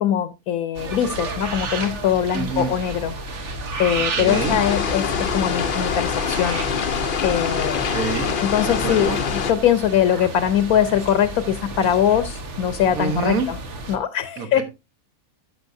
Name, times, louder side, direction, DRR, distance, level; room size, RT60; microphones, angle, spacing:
voice 1, 0.0-3.1 3.8-8.0 8.4-13.6 13.9-14.6, left 10 dB, 80° left, 1.2 m, -22 dB
sound 1, 0.7-14.0, right 3 dB, 55° right, 1.5 m, -32 dB
voice 2, 2.3-2.7 4.1-4.6 7.9-8.4 8.6-9.2 13.0-13.5 14.4-14.6, right 4 dB, 70° right, 1.8 m, -26 dB
sound 2, 4.2-9.5, left 6 dB, 50° left, 0.7 m, -24 dB
sound 3, 8.1-9.4 9.8-11.2 11.7-12.5, right 1 dB, 30° right, 2.1 m, -45 dB
14.0 x 6.9 x 2.6 m
omnidirectional pair, 1.5 m